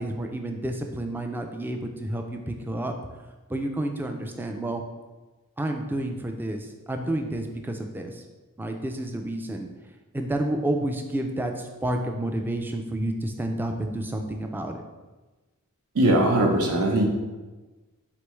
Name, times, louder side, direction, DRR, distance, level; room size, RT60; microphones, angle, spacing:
voice 1, 0.0-2.9 3.5-4.8 5.6-8.2 8.6-9.7 10.1-14.8, right 1 dB, 10° right, 4 dB, 0.3 m, -30 dB
voice 2, 16.0-17.1, right 1 dB, 75° right, 0 dB, 0.8 m, -20 dB
4.4 x 3.3 x 3.1 m, 1.2 s
head